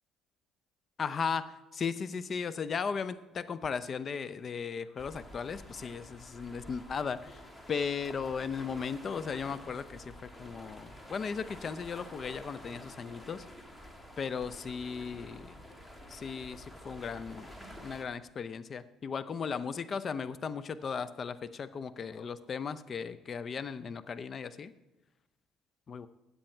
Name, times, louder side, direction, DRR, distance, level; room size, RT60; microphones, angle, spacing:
voice 1, 1.0-13.5 14.2-15.5 16.1-17.5 17.8-24.7 25.9-26.1, left 6 dB, 45° left, 15 dB, 0.6 m, -36 dB
sound 1, 5.0-18.0, equal, 10° left, 1.9 m, -49 dB
13.5 x 8.6 x 4.5 m, 1.0 s
supercardioid pair, 85°, 0 cm